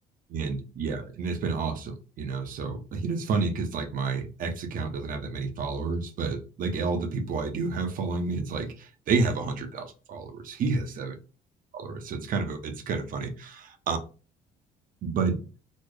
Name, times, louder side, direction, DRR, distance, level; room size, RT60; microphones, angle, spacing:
voice 1, 0.3-11.2 11.7-14.0 15.0-15.4, right 4 dB, 55° right, 7 dB, 0.7 m, -30 dB
4.2 x 2.0 x 3.1 m, 0.35 s
cardioid pair, 110°, 17 cm